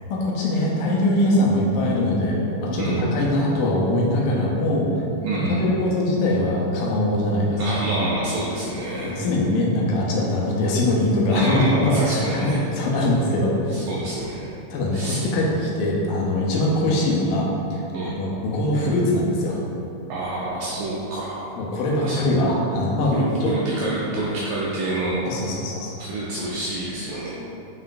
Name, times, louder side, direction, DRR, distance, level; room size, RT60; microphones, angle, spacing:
voice 1, 0.1-5.0 5.3-7.6 9.0-12.5 12.8-13.8 14.7-19.6 21.6-23.6 25.3-26.0, left 1 dB, 90° left, -3 dB, 2.3 m, -22 dB
voice 2, 2.8-3.1 5.2-5.6 7.6-9.2 11.3-12.6 13.7-14.6 14.9-15.3 17.9-18.1 20.1-21.5 22.0-22.2 23.1-25.2 26.0-27.3, right 2 dB, 85° right, -6 dB, 1.6 m, -27 dB
5.5 x 3.8 x 2.5 m, 2.8 s
omnidirectional pair, 3.7 m